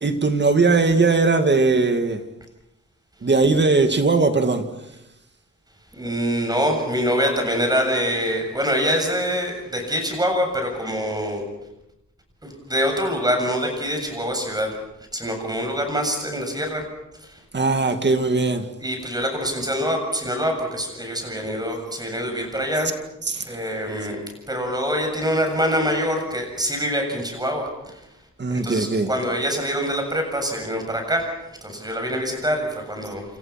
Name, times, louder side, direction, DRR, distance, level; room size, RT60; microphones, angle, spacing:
voice 1, 0.0-2.2 3.2-4.6 17.5-18.6 23.3-23.4 28.4-29.1, right 3 dB, 35° right, 2.2 m, -19 dB
voice 2, 5.9-11.4 12.4-14.8 15.1-16.9 17.2-17.4 18.8-22.9 23.4-28.0 28.5-33.2, equal, 15° right, 7.5 m, -25 dB
29.0 x 27.5 x 5.9 m
wide cardioid pair, 155°, 30 cm